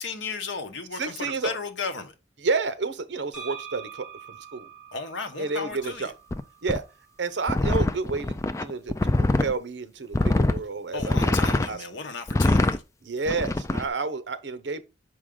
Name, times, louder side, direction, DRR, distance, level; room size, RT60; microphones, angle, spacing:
voice 1, 0.0-2.1 4.9-6.1 10.9-12.8, left 4 dB, 80° left, 1.0 m, -34 dB
voice 2, 1.0-1.6 2.4-4.7 5.4-6.1 6.6-6.8 7.2-11.8 13.1-14.8, right 4 dB, 70° right, 0.7 m, -30 dB
sound 1, 3.3-7.1, right 7 dB, 5° right, 2.3 m, -45 dB
sound 2, 6.3-6.4 6.7-6.8 7.5-9.5 10.1-10.6 11.0-11.7 12.3-12.8 13.3-13.8, left 2 dB, 15° left, 0.3 m, -23 dB
6.3 x 4.8 x 3.7 m
head